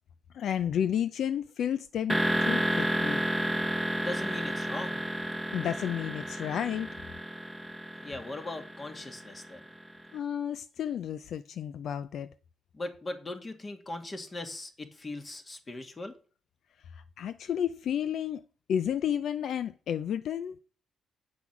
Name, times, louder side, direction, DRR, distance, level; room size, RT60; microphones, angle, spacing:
voice 1, 0.3-3.2 5.5-6.9 10.1-12.3 16.9-18.4 18.7-20.6, left 9 dB, 70° left, 0.5 m, -31 dB
sound 1, 2.1-9.9, right 1 dB, ahead, 1.1 m, -31 dB
voice 2, 4.0-5.0 8.0-9.6 12.7-16.1, left 2 dB, 30° left, 1.8 m, -39 dB
8.7 x 6.0 x 5.9 m
cardioid pair, 90°, 0 cm